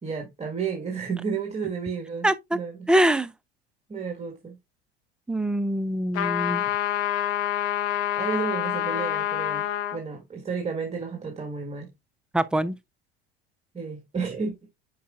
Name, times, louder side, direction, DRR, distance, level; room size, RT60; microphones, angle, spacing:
voice 1, 0.0-2.9 3.9-4.6 8.2-9.7 9.9-11.9 13.7-14.5, right 5 dB, 20° right, 1.4 m, -32 dB
voice 2, 2.2-2.6 2.9-3.3 5.3-6.6 12.3-12.8, right 1 dB, 5° right, 0.4 m, -23 dB
sound 1, 6.1-10.0, left 11 dB, 50° left, 1.1 m, -27 dB
9.3 x 4.8 x 2.3 m
figure-of-eight pair, 75°, 31 cm